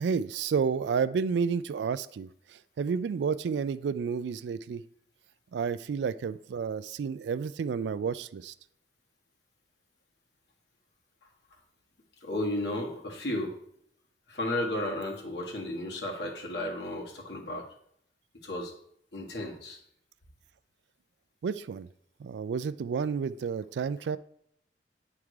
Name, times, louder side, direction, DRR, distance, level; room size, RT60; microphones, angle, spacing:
voice 1, 0.0-2.3 2.8-4.8 5.5-8.5 21.4-21.9 22.2-24.2, right 6 dB, 75° right, 16 dB, 0.3 m, -30 dB
voice 2, 12.2-13.6 14.3-17.7 18.4-18.7 19.1-19.8, left 1 dB, 75° left, 0 dB, 1.5 m, -33 dB
8.9 x 3.6 x 4.7 m, 0.71 s
head